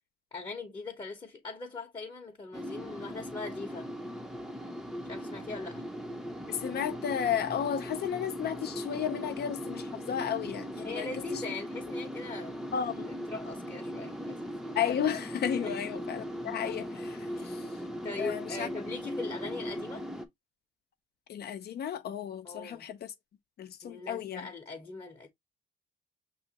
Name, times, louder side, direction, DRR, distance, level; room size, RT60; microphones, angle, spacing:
voice 1, 0.3-3.9 5.1-5.9 10.8-12.6 13.3-14.6 15.6-16.2 17.3-17.6 18.0-20.1 22.4-22.9 23.8-25.3, left 3 dB, 25° left, 0.9 m, -40 dB
sound 1, 2.5-20.3, equal, ahead, 0.7 m, -39 dB
voice 2, 6.5-11.4 12.7-13.1 14.7-17.8 18.2-18.7 21.3-23.1 23.6-24.5, left 9 dB, 50° left, 0.6 m, -33 dB
5.6 x 3.1 x 2.9 m
cardioid pair, 125°, 20 cm